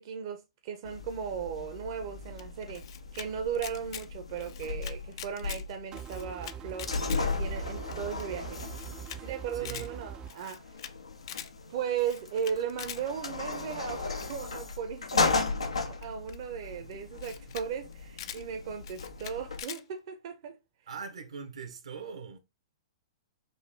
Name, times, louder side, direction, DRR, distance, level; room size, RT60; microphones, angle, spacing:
voice 1, 0.0-2.8 3.1-8.6 9.2-10.7 11.7-20.6, right 8 dB, 50° right, 0.7 m, -36 dB
sound 1, 0.8-19.6, left 4 dB, 85° left, 0.7 m, -36 dB
Camera, 2.4-3.3 3.5-4.1 4.4-5.6 5.9-7.2 7.6-7.7 7.9-8.0 8.2-8.3 8.6-9.2 9.5-9.9 10.3-10.9 11.2-11.5 11.9-13.0 14.2-14.5 15.1-16.4 16.9-17.0 17.2-17.7 17.9-18.4 18.8-19.8, left 10 dB, 50° left, 0.5 m, -43 dB
sound 2, 5.9-10.3, right 8 dB, 25° right, 0.4 m, -43 dB
voice 2, 9.5-10.0 16.6-16.9 20.9-22.4, right 5 dB, 75° right, 1.0 m, -42 dB
4.3 x 2.6 x 3.6 m
figure-of-eight pair, 115°, 3 cm